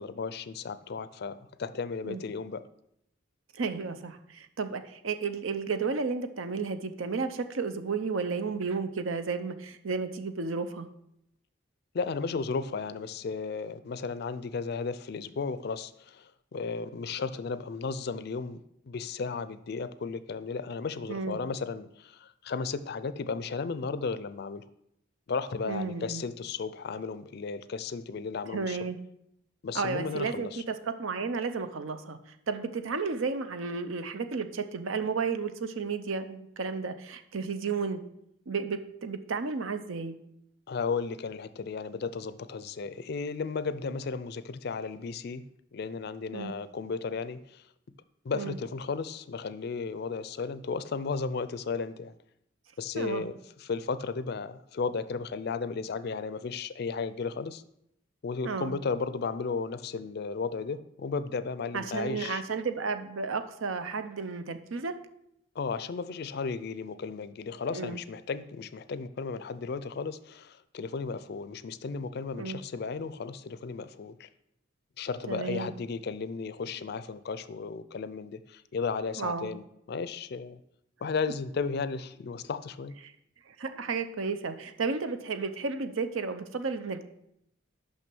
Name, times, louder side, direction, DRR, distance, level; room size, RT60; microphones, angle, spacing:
voice 1, 0.0-2.6 11.9-24.7 25.3-28.8 29.6-30.6 40.7-45.4 45.7-47.6 48.2-52.1 52.8-53.3 53.6-57.6 58.2-62.4 65.6-74.3 75.0-80.6 81.0-82.9, left 4 dB, 55° left, 14 dB, 0.4 m, -34 dB
voice 2, 3.5-10.9 21.1-21.4 25.7-26.2 28.5-29.0 29.7-32.2 32.5-38.0 38.5-40.2 46.3-46.5 48.3-48.6 52.9-53.3 58.4-58.7 61.7-64.9 67.7-68.0 72.3-72.6 75.3-75.7 79.2-79.5 83.0-83.1 83.5-87.1, right 4 dB, 85° right, 10 dB, 0.7 m, -33 dB
6.2 x 5.7 x 6.0 m, 0.79 s
head